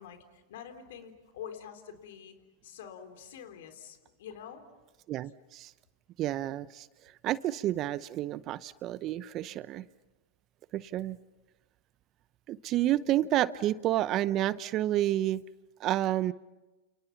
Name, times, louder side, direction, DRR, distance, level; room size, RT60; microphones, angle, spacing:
voice 1, 0.0-2.3 2.6-4.6 12.8-12.9, left 8 dB, 70° left, 7 dB, 3.5 m, -46 dB
voice 2, 5.1-5.7 6.2-9.9 10.7-11.2 12.5-15.4 15.8-16.3, right 13 dB, 40° right, 17 dB, 0.8 m, -30 dB
29.0 x 28.5 x 5.8 m, 1.1 s
hypercardioid pair, 105°, 0 cm